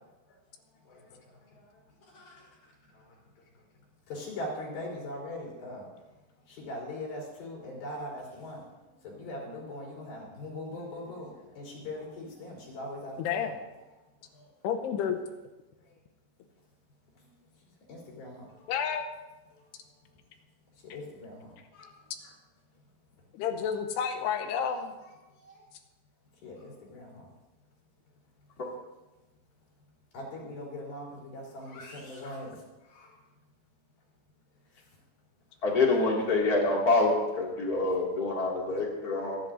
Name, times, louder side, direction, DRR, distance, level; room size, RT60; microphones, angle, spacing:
voice 1, 0.9-1.7 2.0-2.5 2.9-3.2 4.1-5.9 6.5-8.6 9.0-13.5 14.3-14.5 17.2-17.3 17.9-18.7 19.5-19.7 20.8-21.9 25.4-25.6 26.4-27.3 30.1-33.1 38.7-38.8, left 1 dB, 60° left, -3 dB, 5.3 m, -41 dB
voice 2, 13.2-13.6 14.6-15.2 18.7-19.1 23.3-24.9, left 7 dB, 80° left, 7 dB, 2.8 m, -30 dB
voice 3, 35.6-39.4, left 3 dB, 30° left, -2 dB, 1.8 m, -26 dB
23.0 x 11.0 x 2.6 m, 1.1 s
omnidirectional pair, 4.9 m